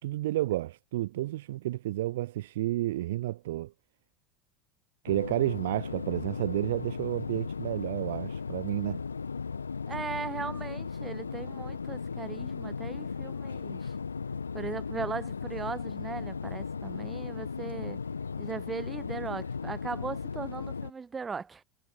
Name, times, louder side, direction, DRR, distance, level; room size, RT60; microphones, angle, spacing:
voice 1, 0.0-3.7 5.0-9.0, right 15 dB, 65° right, 2.0 m, -31 dB
sound 1, 5.0-20.9, left 5 dB, 85° left, 1.8 m, -36 dB
voice 2, 9.9-13.9 14.5-18.0 18.4-21.6, right 5 dB, 20° right, 6.3 m, -38 dB
figure-of-eight pair, 75°, 0 cm